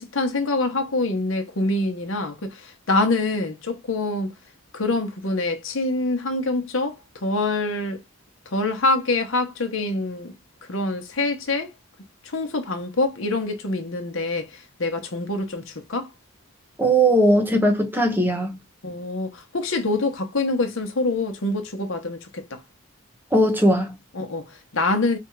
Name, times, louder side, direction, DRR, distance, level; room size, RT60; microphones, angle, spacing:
voice 1, 0.0-4.3 4.7-8.0 8.5-10.3 10.7-11.7 12.2-16.1 18.8-22.6 24.1-25.2, left 2 dB, 80° left, 1.0 m, -25 dB
voice 2, 16.8-18.6 23.3-24.0, right 1 dB, 10° right, 0.9 m, -19 dB
3.4 x 2.5 x 4.5 m
head